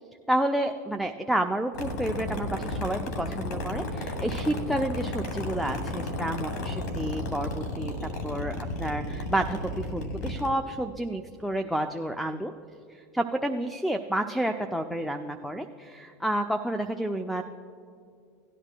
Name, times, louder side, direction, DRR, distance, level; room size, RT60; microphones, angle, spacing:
voice 1, 0.3-7.9 8.2-12.5 12.9-17.4, right 1 dB, ahead, 8 dB, 0.4 m, -30 dB
sound 1, 1.7-10.5, left 1 dB, 90° left, 1.4 m, -33 dB
17.5 x 11.0 x 2.2 m, 2.4 s
supercardioid pair, 120°, 9 cm